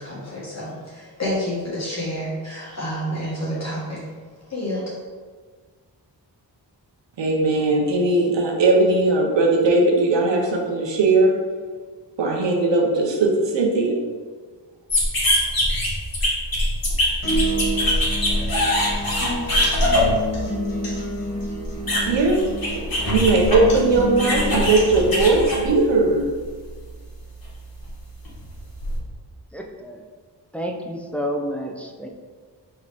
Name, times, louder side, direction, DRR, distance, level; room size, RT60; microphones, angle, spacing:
voice 1, 0.0-4.1 4.5-4.9, equal, 35° left, -8 dB, 1.3 m, -29 dB
voice 2, 7.2-11.4 12.2-14.0 22.0-22.4 22.8-26.3, right 2 dB, 80° right, 1 dB, 0.9 m, -19 dB
sound 1, 14.9-26.2 26.6-29.0, left 1 dB, 55° left, 1.4 m, -23 dB
sound 2, 17.2-25.2, equal, 70° left, 1.4 m, -29 dB
voice 3, 29.5-30.0 30.5-32.1, equal, 5° left, 0 dB, 0.4 m, -30 dB
4.8 x 3.1 x 3.4 m, 1.5 s
wide cardioid pair, 105°, 43 cm